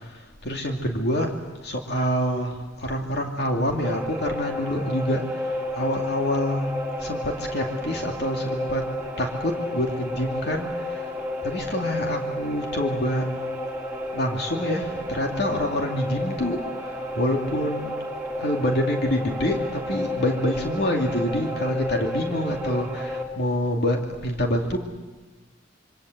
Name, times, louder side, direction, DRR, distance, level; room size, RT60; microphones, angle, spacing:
voice 1, 0.0-6.7 7.0-8.9 9.2-11.1 11.4-13.3 14.1-17.9 18.4-24.8, equal, 65° left, 2 dB, 2.6 m, -27 dB
sound 1, 3.8-23.2, left 1 dB, 10° right, 2.8 m, -31 dB
26.5 x 24.5 x 8.0 m, 1.3 s
head